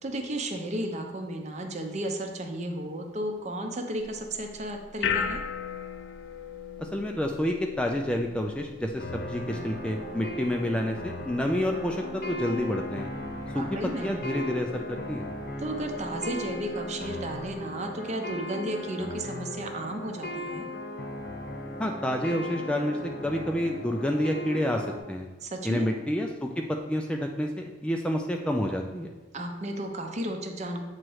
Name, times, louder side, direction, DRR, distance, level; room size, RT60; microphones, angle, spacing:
voice 1, 0.0-5.4 13.5-14.1 15.6-20.7 25.4-25.9 29.3-30.8, right 1 dB, 40° right, 4 dB, 0.7 m, -33 dB
sound 1, 4.0-17.5, left 7 dB, 70° left, 0.4 m, -39 dB
voice 2, 6.8-13.1 13.5-15.3 21.8-25.3 25.6-29.1, equal, 5° left, 2 dB, 0.3 m, -29 dB
sound 2, 9.0-25.0, left 1 dB, 55° left, 0.9 m, -37 dB
7.5 x 3.0 x 4.7 m, 1.2 s
head